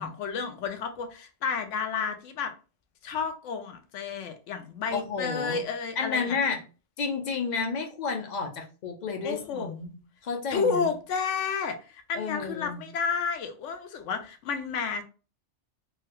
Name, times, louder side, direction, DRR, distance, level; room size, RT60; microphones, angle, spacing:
voice 1, 0.0-2.5 3.0-6.4 9.2-9.7 10.5-15.0, left 5 dB, 85° left, 0.9 m, -31 dB
voice 2, 4.9-5.6 6.0-6.6 7.0-10.0 10.2-10.9 12.1-12.8, left 5 dB, 45° left, 0.6 m, -31 dB
3.3 x 2.3 x 2.8 m
omnidirectional pair, 1.2 m